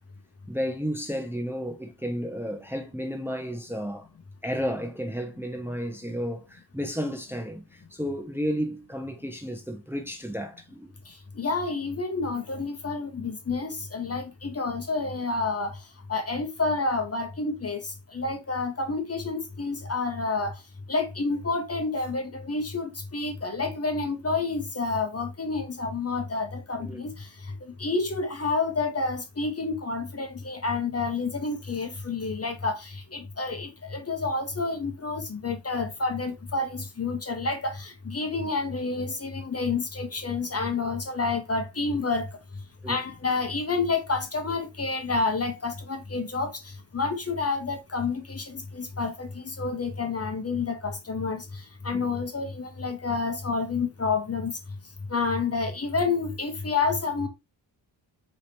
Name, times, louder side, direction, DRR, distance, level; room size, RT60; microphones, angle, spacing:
voice 1, 0.5-4.1 4.4-10.9 26.8-27.0 42.8-43.0 51.9-52.1, equal, 5° right, 1.0 m, -32 dB
voice 2, 11.4-15.8 16.1-17.8 18.1-20.5 20.9-27.3 27.6-42.3 42.9-46.5 46.9-54.5 55.1-57.3, left 3 dB, 30° left, 1.1 m, -29 dB
4.9 x 3.3 x 2.8 m
cardioid pair, 80°, 46 cm